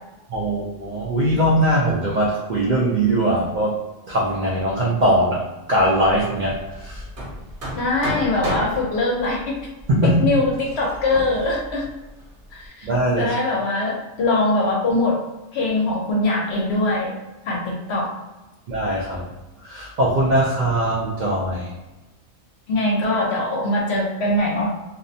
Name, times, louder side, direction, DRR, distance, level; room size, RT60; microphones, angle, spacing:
voice 1, 0.3-3.7 4.1-5.4 5.7-7.0 9.9-10.3 12.8-13.3 18.7-19.3 19.6-21.7, right 1 dB, 75° right, -4 dB, 0.4 m, -21 dB
Hammer, 5.8-12.7, equal, 50° right, 0.8 m, -34 dB
voice 2, 7.8-9.4 10.0-11.8 12.5-12.9 13.2-15.2 15.5-17.1 17.5-18.1 22.7-24.7, left 2 dB, 60° left, -2 dB, 0.8 m, -22 dB
2.5 x 2.1 x 2.6 m, 1.0 s
omnidirectional pair, 1.4 m